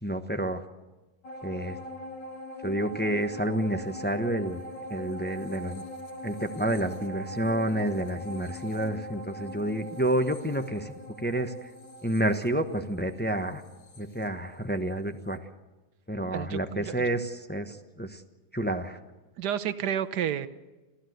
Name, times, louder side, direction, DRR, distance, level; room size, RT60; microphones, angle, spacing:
voice 1, 0.0-0.6 1.4-1.8 2.6-4.6 4.9-5.8 6.2-10.9 11.2-11.5 12.0-13.6 14.0-15.4 16.1-18.2 18.5-19.0, right 1 dB, 10° left, 7 dB, 0.8 m, -29 dB
sound 1, 1.2-14.9 15.3-15.4, left 1 dB, 80° left, 2.7 m, -42 dB
voice 2, 16.3-17.1 19.4-20.5, right 9 dB, 70° right, 13 dB, 1.5 m, -31 dB
28.5 x 15.0 x 8.0 m, 1.1 s
omnidirectional pair, 1.9 m